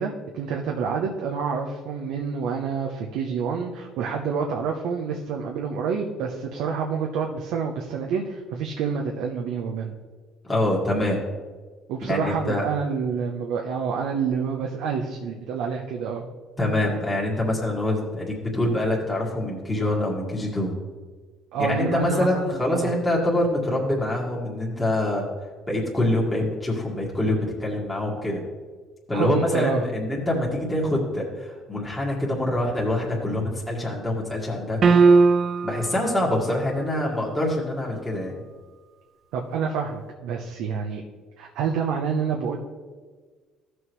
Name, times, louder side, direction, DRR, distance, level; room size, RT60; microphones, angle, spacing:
voice 1, 0.0-9.9 11.9-16.2 21.5-22.9 29.1-29.8 39.3-41.0 41.4-42.6, right 6 dB, 85° right, 1 dB, 0.8 m, -28 dB
voice 2, 10.5-11.2 12.1-12.7 16.6-20.7 21.6-25.2 25.7-28.4 29.1-34.8 35.6-38.4, left 1 dB, 15° left, -5 dB, 2.0 m, -25 dB
sound 1, 34.8-35.9, right 4 dB, 45° right, 0.5 m, -16 dB
15.0 x 6.3 x 3.2 m, 1.4 s
cardioid pair, 105°, 0 cm